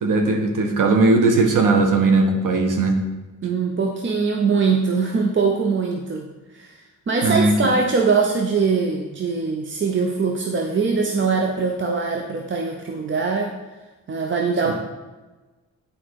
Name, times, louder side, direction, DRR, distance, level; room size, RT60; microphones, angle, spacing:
voice 1, 0.0-3.0 7.2-7.5 14.6-14.7, right 3 dB, 80° right, 4 dB, 1.4 m, -18 dB
voice 2, 3.4-6.7 7.1-13.5 14.1-14.7, right 4 dB, 40° right, 2 dB, 0.8 m, -22 dB
9.2 x 4.9 x 4.8 m, 1.2 s
cardioid pair, 105°, 32 cm